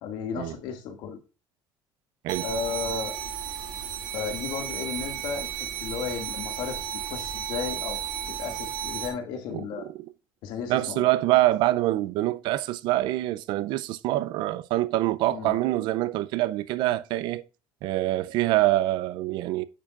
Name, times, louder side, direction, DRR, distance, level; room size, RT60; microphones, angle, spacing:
voice 1, 0.0-1.2 2.4-3.1 3.5-3.7 4.1-5.5 5.8-6.8 7.1-8.0 8.3-9.9 10.4-11.0 15.3-15.5, left 6 dB, 75° left, 2.1 m, -34 dB
sound 1, 2.3-9.1, right 10 dB, 55° right, 2.3 m, -33 dB
voice 2, 9.5-10.1 10.7-17.4 17.8-19.6, right 16 dB, 70° right, 0.5 m, -25 dB
9.9 x 7.3 x 2.5 m
cardioid pair, 170°, 8 cm